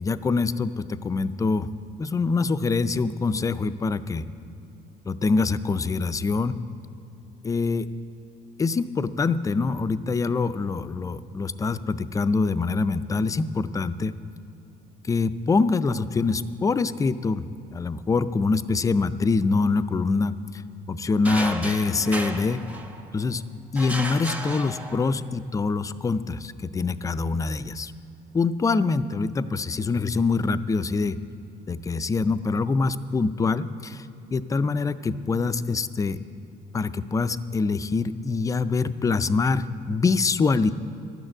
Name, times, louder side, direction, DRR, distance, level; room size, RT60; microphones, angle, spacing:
voice 1, 0.0-1.7 2.0-4.2 5.1-6.5 7.4-7.9 8.6-14.1 15.1-17.4 17.7-20.3 20.9-22.6 23.1-23.4 23.7-27.9 28.3-31.2 31.7-34.0 34.3-36.2 36.7-40.7, left 4 dB, 20° left, 14 dB, 0.4 m, -24 dB
sound 1, 21.2-23.2 23.8-25.3, right 1 dB, 10° right, 0.9 m, -33 dB
12.0 x 6.4 x 8.8 m, 2.7 s
cardioid pair, 110°, 17 cm